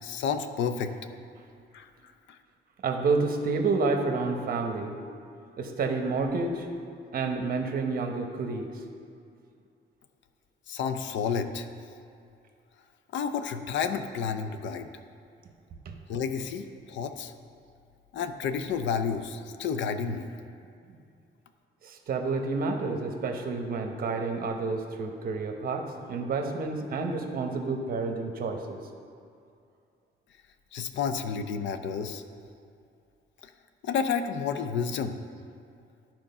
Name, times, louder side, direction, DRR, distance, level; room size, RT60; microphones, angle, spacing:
voice 1, 0.0-0.9 1.7-1.9 2.3-2.4 10.7-11.7 13.1-14.9 16.1-17.3 18.1-20.3 30.7-32.2 33.8-35.2, left 6 dB, 80° left, 9 dB, 0.5 m, -30 dB
voice 2, 2.8-4.9 5.6-6.7 7.1-8.7 15.9-16.0 21.8-28.8, right 4 dB, 50° right, 4 dB, 0.9 m, -29 dB
11.5 x 4.5 x 5.5 m, 2.4 s
cardioid pair, 145°, 19 cm